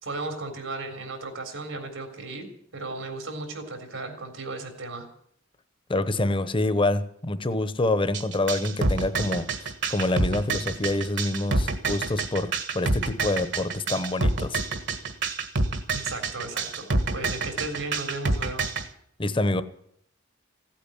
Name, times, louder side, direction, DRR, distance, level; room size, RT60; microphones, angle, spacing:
voice 1, 0.0-5.1 15.9-18.7, right 3 dB, 85° right, 6 dB, 3.6 m, -35 dB
voice 2, 5.9-14.6 19.2-19.6, left 2 dB, 25° left, 12 dB, 0.9 m, -26 dB
sound 1, 8.1-18.8, right 3 dB, 60° right, 1.6 m, -27 dB
16.0 x 8.7 x 10.0 m, 0.69 s
head